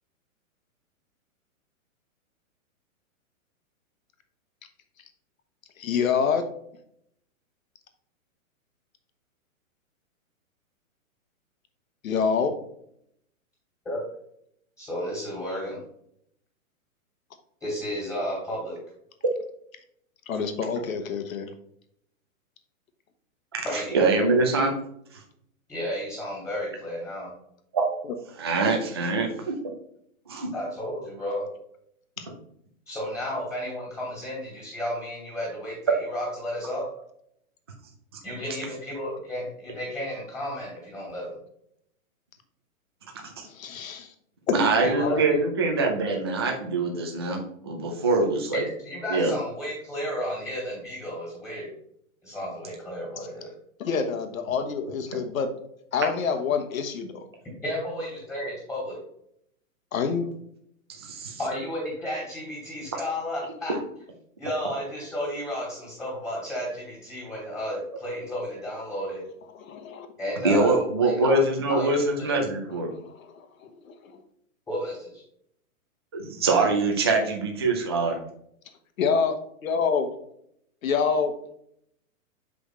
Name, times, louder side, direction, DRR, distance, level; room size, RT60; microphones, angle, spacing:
voice 1, 5.8-6.5 12.0-12.7 20.3-21.5 28.0-28.1 32.2-32.3 43.4-44.1 44.5-44.6 45.0-45.2 53.2-53.3 53.8-55.5 55.9-57.2 59.9-60.3 69.6-70.1 72.9-74.2 79.0-79.4 79.6-80.1 80.8-81.3, left 6 dB, 70° left, 7 dB, 1.2 m, -27 dB
voice 2, 14.8-15.8 17.6-18.8 23.6-24.4 25.7-27.3 30.5-31.5 32.9-36.8 38.2-41.3 44.8-45.4 48.5-51.7 52.2-53.5 57.6-59.0 61.4-63.7 64.4-69.2 70.2-71.4 71.7-72.4 74.7-75.2, equal, 5° left, -3 dB, 2.3 m, -33 dB
voice 3, 23.9-24.7 27.7-27.9 28.4-29.6 30.3-30.5 43.4-43.5 44.5-48.6 49.1-49.3 61.0-61.4 70.4-72.9 76.1-78.2, right 3 dB, 20° right, 1 dB, 0.4 m, -24 dB
6.2 x 5.0 x 3.1 m, 0.71 s
hypercardioid pair, 160°, 42 cm